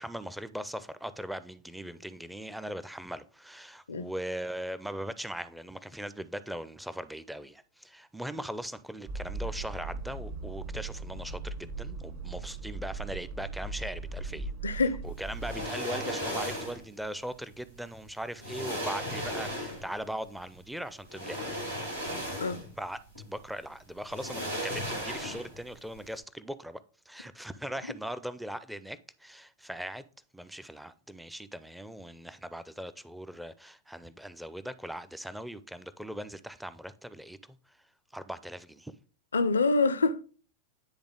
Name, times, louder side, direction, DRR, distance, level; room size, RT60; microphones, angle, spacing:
voice 1, 0.0-21.5 22.8-23.0 23.2-26.8 27.1-30.1 30.3-37.6 38.1-38.9, equal, ahead, 0.4 m, -40 dB
sound 1, 9.1-15.6, right 3 dB, 55° right, 1.3 m, -38 dB
voice 2, 14.6-15.0 22.4-22.6 39.3-40.2, left 3 dB, 70° left, 0.4 m, -26 dB
sound 2, 15.4-16.9 17.9-18.0 18.4-20.0 21.1-22.8 23.1-23.3 24.1-25.7 26.0-26.1, equal, 85° right, 2.0 m, -36 dB
9.7 x 3.3 x 3.8 m
figure-of-eight pair, 90°, 0 cm